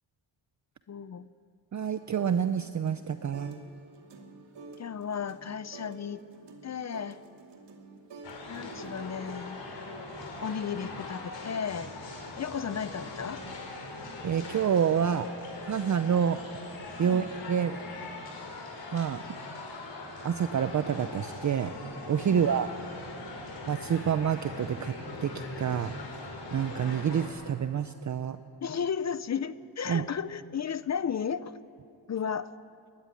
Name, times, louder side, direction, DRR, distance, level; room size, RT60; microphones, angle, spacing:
voice 1, 0.9-1.3 4.8-6.2 6.6-7.2 8.5-9.6 10.4-11.9 12.4-13.4 17.0-17.3 22.3-22.4 28.6-31.6 32.1-32.5, left 7 dB, 35° left, 15 dB, 0.6 m, -34 dB
voice 2, 1.7-3.5 14.2-15.3 15.6-16.4 17.0-17.8 18.9-19.2 20.2-21.7 22.1-22.7 23.7-24.9 25.2-25.3 25.6-25.9 26.5-28.4 29.9-30.0, right 8 dB, 40° right, 11 dB, 0.6 m, -27 dB
sound 1, 1.9-3.7 3.9-9.4, right 3 dB, 65° right, 2.3 m, -50 dB
sound 2, 8.2-27.3, left 2 dB, 65° left, 4.6 m, -41 dB
19.5 x 14.0 x 9.8 m, 2.4 s
wide cardioid pair, 125°, 46 cm